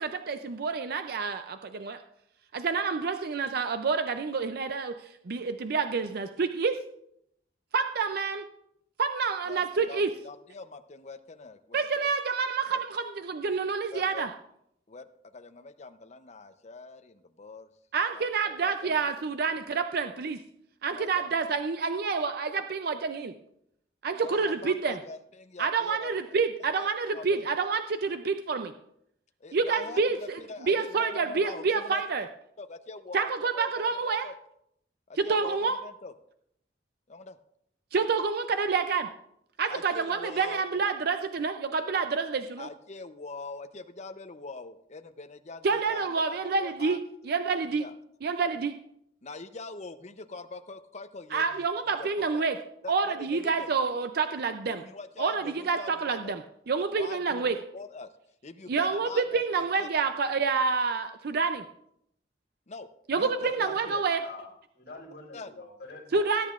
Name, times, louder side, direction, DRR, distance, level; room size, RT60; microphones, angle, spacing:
voice 1, 0.0-2.0 2.5-6.8 7.7-8.4 9.0-10.1 11.7-14.3 17.9-20.4 20.8-23.3 24.0-25.0 25.6-28.7 29.5-30.4 30.7-32.3 33.1-34.3 35.2-35.8 37.9-39.1 39.6-42.7 45.6-47.0 47.3-47.9 48.2-48.8 51.3-52.6 52.9-54.8 55.2-56.4 56.7-57.6 58.7-61.6 63.1-64.2 66.1-66.5, right 5 dB, 55° right, 8 dB, 0.5 m, -28 dB
voice 2, 9.5-12.1 12.7-12.8 13.9-14.3 14.9-15.1 15.3-17.7 18.1-18.7 20.9-21.3 24.1-26.1 26.8-27.4 29.4-32.0 32.6-33.7 34.0-34.3 35.2-36.1 37.1-37.4 39.7-40.7 42.6-47.0 47.8-47.9 49.2-52.4 52.8-53.7 54.6-56.4 56.9-58.1 58.4-59.9 62.7-62.9 63.2-64.0 65.3-65.5, left 3 dB, 40° left, 9 dB, 0.7 m, -43 dB
voice 3, 63.1-64.5 64.7-66.3, left 2 dB, 60° left, -4 dB, 5.6 m, -46 dB
20.0 x 10.0 x 2.5 m, 0.76 s
head